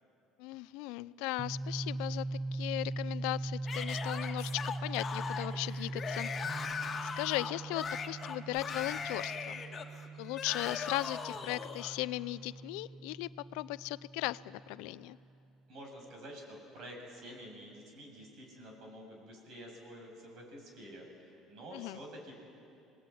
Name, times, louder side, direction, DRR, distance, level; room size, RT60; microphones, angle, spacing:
voice 1, 0.4-6.3 7.2-9.6 10.2-15.2 21.7-22.0, left 20 dB, 80° left, 18 dB, 0.5 m, -37 dB
sound 1, 1.4-15.0, right 2 dB, 25° right, 1.6 m, -41 dB
Yell / Screaming, 3.7-12.0, left 6 dB, 35° left, 2.2 m, -39 dB
voice 2, 15.7-22.3, equal, 60° right, 1 dB, 8.0 m, -49 dB
27.0 x 19.0 x 9.3 m, 2.6 s
supercardioid pair, 90°, 0 cm